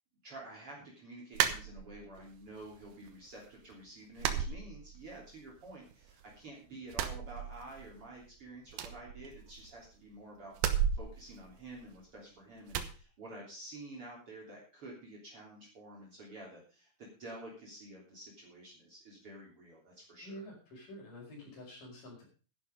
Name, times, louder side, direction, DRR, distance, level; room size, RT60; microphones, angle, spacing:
voice 1, 0.2-20.4, right 2 dB, 40° right, -3 dB, 4.0 m, -50 dB
sound 1, 1.3-2.2 2.6-3.3 3.6-3.7 4.2-5.3 5.6-6.4 6.8-8.0 8.3-8.4 8.7-9.9 10.5-12.2 12.7-13.0, right 9 dB, 85° right, 3.0 m, -35 dB
voice 2, 20.2-22.2, equal, 65° left, 0 dB, 7.0 m, -48 dB
11.5 x 11.0 x 5.3 m, 0.37 s
omnidirectional pair, 4.2 m